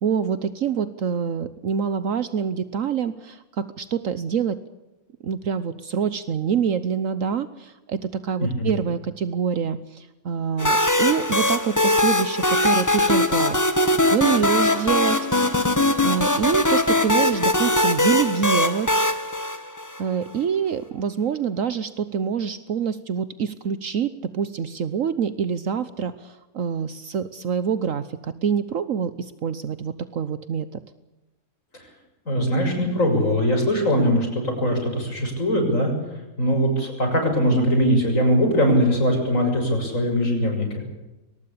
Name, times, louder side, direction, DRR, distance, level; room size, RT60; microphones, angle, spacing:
voice 1, 0.0-4.6 5.2-13.6 14.1-15.2 15.5-19.0 20.0-30.8, right 7 dB, 70° right, 14 dB, 1.3 m, -26 dB
voice 2, 8.4-8.8 32.3-35.9 36.4-40.8, equal, 65° left, 3 dB, 7.2 m, -21 dB
sound 1, 10.6-20.2, left 1 dB, 15° left, 1.4 m, -21 dB
22.5 x 19.5 x 8.5 m, 1.0 s
omnidirectional pair, 1.5 m